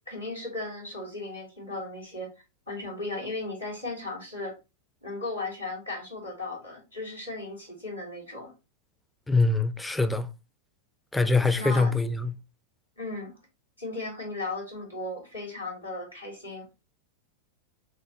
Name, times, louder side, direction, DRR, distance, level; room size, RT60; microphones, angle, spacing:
voice 1, 0.1-2.3 2.7-4.6 5.0-8.5 11.6-11.9 13.0-13.3 13.8-16.7, left 2 dB, 80° left, 2.7 m, -36 dB
voice 2, 9.3-10.3 11.1-12.3, left 3 dB, 5° left, 0.5 m, -24 dB
6.4 x 2.2 x 2.9 m
figure-of-eight pair, 90°, 0 cm